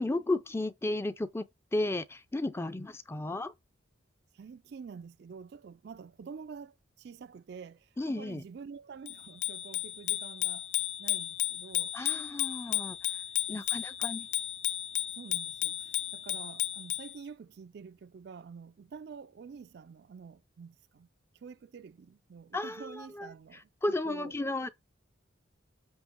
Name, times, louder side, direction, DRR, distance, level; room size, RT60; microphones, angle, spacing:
voice 1, 0.0-3.5 8.0-8.4 11.9-13.0 13.5-14.3 22.5-24.7, left 2 dB, 15° left, 0.4 m, -34 dB
voice 2, 4.3-10.7 11.0-11.9 13.5-13.6 15.2-21.1 21.4-23.6 24.0-24.3, right 5 dB, 55° right, 0.3 m, -48 dB
Bicycle bell, 9.1-17.1, left 11 dB, 70° left, 0.7 m, -33 dB
8.0 x 2.8 x 5.0 m
head